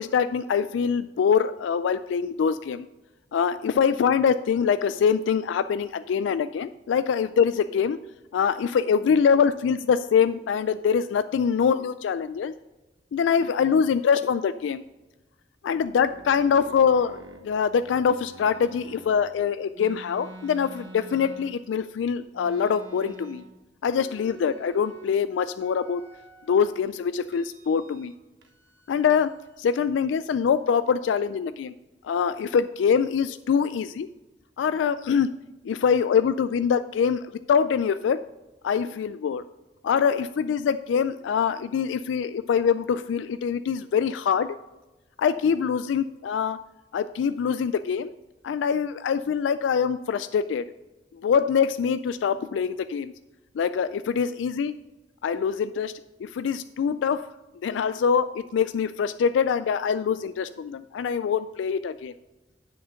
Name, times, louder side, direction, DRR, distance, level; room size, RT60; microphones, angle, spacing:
voice 1, 0.0-2.9 3.3-8.0 8.3-12.5 13.1-14.8 15.6-17.2 17.4-23.4 23.8-26.0 26.5-28.1 28.9-29.3 29.6-31.7 32.0-34.1 34.6-35.3 35.6-38.2 38.6-39.5 39.8-44.6 45.2-46.6 46.9-48.1 48.4-50.7 51.2-53.1 53.6-54.7 55.2-55.9 56.2-57.3 57.6-62.1, left 7 dB, 90° left, 13 dB, 0.3 m, -24 dB
sound 1, 15.7-19.3 19.7-21.9 22.3-23.6 23.9-25.2 25.6-26.7 27.3-28.2 28.4-29.6, right 2 dB, 70° right, 1.2 m, -47 dB
8.0 x 6.5 x 5.0 m, 1.1 s
head